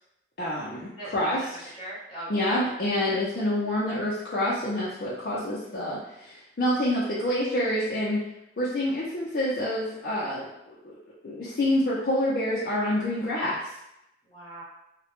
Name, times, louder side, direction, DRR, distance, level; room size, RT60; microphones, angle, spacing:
voice 1, 0.4-1.4 2.3-8.2 8.6-11.0 11.2-13.7, left 1 dB, 60° left, -8 dB, 0.5 m, -27 dB
voice 2, 1.5-2.6 3.0-3.2 14.2-14.6, right 1 dB, 30° left, -8 dB, 0.8 m, -40 dB
2.1 x 2.0 x 2.9 m, 0.84 s
head